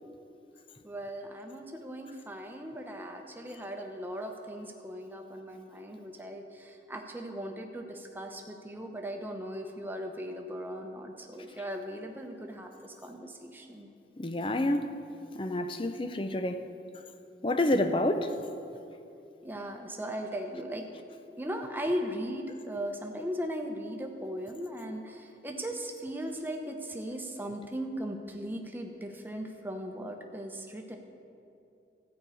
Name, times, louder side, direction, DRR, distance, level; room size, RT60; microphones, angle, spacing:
voice 1, 0.8-13.9 19.4-20.8 21.4-31.0, equal, 10° right, 0.9 m, -38 dB
voice 2, 14.2-14.9 15.3-16.7 17.4-18.3, left 1 dB, 30° left, 0.5 m, -28 dB
13.5 x 5.5 x 8.5 m
head